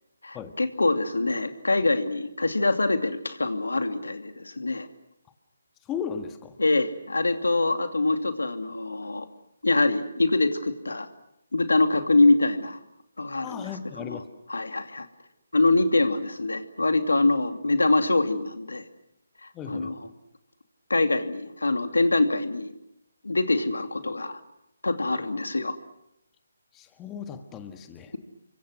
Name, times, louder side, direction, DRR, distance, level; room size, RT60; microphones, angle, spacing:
voice 1, 0.2-4.9 6.6-9.3 9.6-11.1 11.5-12.8 13.2-13.7 14.0-14.2 14.5-15.1 15.5-18.8 19.4-20.0 20.9-22.7 23.2-24.4 24.8-25.8, left 2 dB, 85° left, 8 dB, 2.6 m, -24 dB
voice 2, 5.8-6.6 13.4-14.3 19.5-19.9 26.7-28.1, left 7 dB, 15° left, 7 dB, 1.7 m, -36 dB
29.0 x 25.0 x 6.3 m, 0.81 s
figure-of-eight pair, 150°, 0 cm